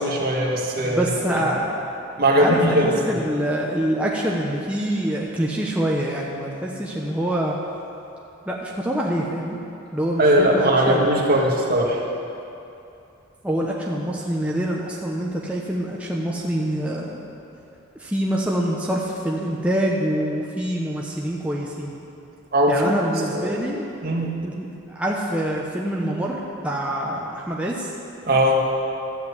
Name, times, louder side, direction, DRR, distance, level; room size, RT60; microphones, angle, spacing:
voice 1, 0.0-1.0 2.2-2.9 10.2-12.0 22.5-22.9 23.3-23.5 24.0-24.4 28.3-28.6, right 1 dB, 50° right, -2 dB, 1.9 m, -19 dB
voice 2, 0.8-1.9 2.4-7.6 8.5-9.6 9.9-11.6 13.4-17.2 18.0-21.9 22.7-23.9 24.4-27.9, right 1 dB, 5° right, -3 dB, 0.9 m, -25 dB
13.5 x 7.6 x 8.3 m, 2.7 s
head